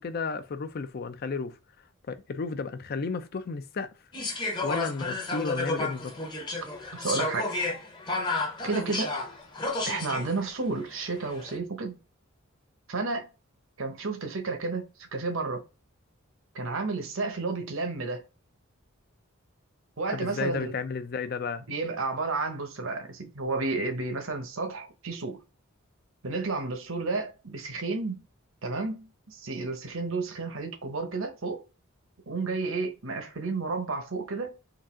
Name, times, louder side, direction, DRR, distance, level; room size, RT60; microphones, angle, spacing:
voice 1, 0.0-1.6 2.1-3.9 4.6-6.2 20.1-21.6, left 4 dB, 45° left, 0.4 m, -33 dB
sound 1, 4.1-10.4 11.2-11.6, left 2 dB, 20° left, 0.7 m, -32 dB
voice 2, 6.9-7.5 8.6-9.1 9.9-12.0 12.9-13.3 13.8-15.6 16.5-18.2 20.0-20.7 21.7-25.4 26.2-28.2 28.6-31.6 32.3-34.6, right 3 dB, 70° right, 0.9 m, -31 dB
3.9 x 2.4 x 3.6 m
head